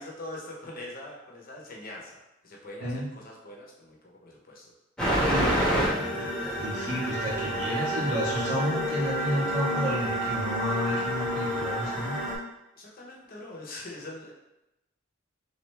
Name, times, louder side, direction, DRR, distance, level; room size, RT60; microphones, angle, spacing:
voice 1, 0.0-2.1 2.4-4.0 4.2-4.7 12.8-14.3, left 1 dB, 50° left, -2 dB, 0.8 m, -42 dB
sound 1, 5.0-12.3, equal, 5° left, 0.9 m, -28 dB
voice 2, 5.2-12.2, equal, 75° right, -6 dB, 1.5 m, -31 dB
3.5 x 3.2 x 3.3 m, 0.92 s
head